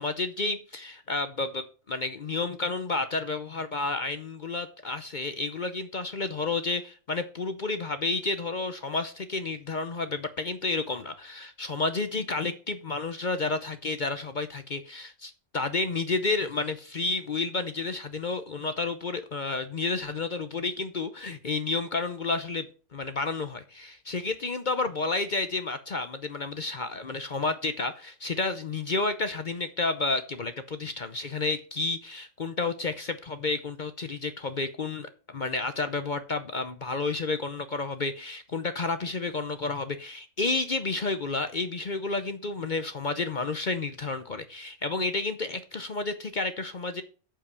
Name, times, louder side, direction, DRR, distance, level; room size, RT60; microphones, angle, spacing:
voice 1, 0.0-22.7 22.9-47.0, left 3 dB, 45° left, 0.7 m, -31 dB
8.7 x 5.7 x 6.9 m
omnidirectional pair, 1.5 m